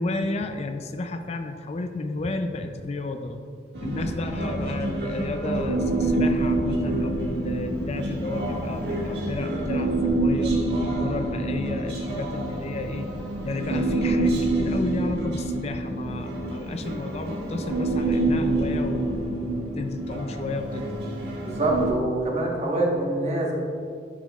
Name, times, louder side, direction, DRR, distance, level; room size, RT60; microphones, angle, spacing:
voice 1, 0.0-3.4 3.8-10.6 11.0-13.1 13.4-20.8, left 2 dB, 35° left, 7 dB, 0.4 m, -32 dB
Human voice, 3.7-21.9, right 2 dB, 65° right, 1.6 m, -27 dB
voice 2, 21.4-23.5, right 2 dB, 40° right, -2 dB, 1.3 m, -25 dB
12.0 x 5.8 x 2.4 m, 2.3 s
head